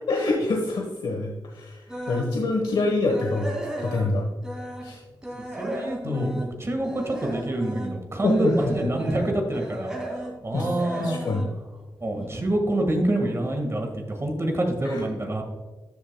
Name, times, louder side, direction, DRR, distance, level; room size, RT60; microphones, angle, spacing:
voice 1, 0.1-1.8 2.1-4.3 4.8-5.0 6.0-6.3 8.2-8.9 10.5-10.7 11.0-11.5 14.8-15.0, left 3 dB, 75° left, 1 dB, 1.1 m, -26 dB
sound 1, 1.9-2.3 2.7-4.9 5.2-12.4 12.8-13.1 13.5-13.6 14.0-14.1, right 1 dB, 10° right, 2.1 m, -35 dB
voice 2, 5.3-11.2 12.0-15.4, right 1 dB, 35° right, 3 dB, 1.6 m, -27 dB
12.5 x 7.4 x 2.2 m, 1.3 s
wide cardioid pair, 95°, 8 cm